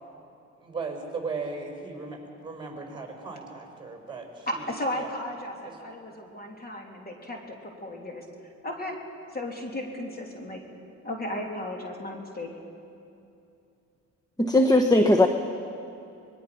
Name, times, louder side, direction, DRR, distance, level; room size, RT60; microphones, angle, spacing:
voice 1, 0.6-4.7 5.0-5.1 5.7-5.8, right 4 dB, 15° right, 1 dB, 5.3 m, -37 dB
voice 2, 4.5-8.2 8.6-9.0 9.3-10.6 11.0-12.5, left 1 dB, 30° left, 1 dB, 3.1 m, -35 dB
voice 3, 14.4-15.3, left 1 dB, 15° left, 6 dB, 1.1 m, -18 dB
24.5 x 21.5 x 5.9 m, 2.6 s
cardioid pair, 90°, 30 cm